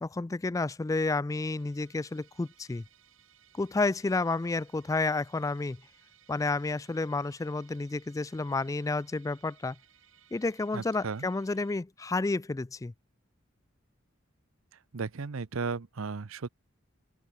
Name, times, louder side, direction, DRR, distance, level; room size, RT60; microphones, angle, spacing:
voice 1, 0.0-2.8 3.5-5.8 6.3-9.8 10.3-12.9, left 3 dB, 15° left, 0.3 m, -30 dB
Musical instrument, 1.6-11.8, right 10 dB, 75° right, 5.0 m, -62 dB
voice 2, 10.7-11.3 14.9-16.5, right 4 dB, 90° right, 0.7 m, -35 dB
open air
head